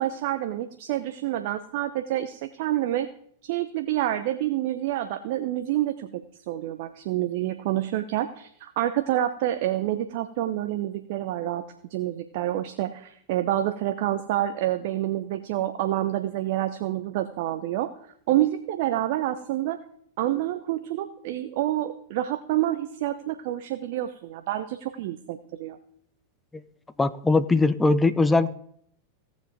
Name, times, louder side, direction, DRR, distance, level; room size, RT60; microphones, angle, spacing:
voice 1, 0.0-3.1 3.4-11.6 11.9-17.9 18.3-19.8 20.2-25.8, right 13 dB, 50° right, 9 dB, 0.7 m, -28 dB
voice 2, 27.0-28.6, left 3 dB, 10° left, 14 dB, 0.6 m, -21 dB
17.0 x 7.3 x 5.1 m, 0.65 s
figure-of-eight pair, 90°, 0 cm